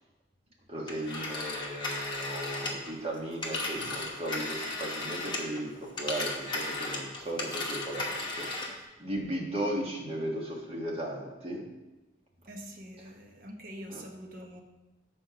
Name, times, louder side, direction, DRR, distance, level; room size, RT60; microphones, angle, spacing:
voice 1, 0.7-8.7 9.0-11.6 13.9-14.0, right 1 dB, 35° right, -1 dB, 1.3 m, -36 dB
Telephone, 0.9-5.6 5.9-8.8, left 2 dB, 25° left, 1.1 m, -35 dB
voice 2, 12.5-14.6, equal, 50° right, 3 dB, 0.9 m, -44 dB
7.4 x 4.4 x 5.7 m, 1.1 s
head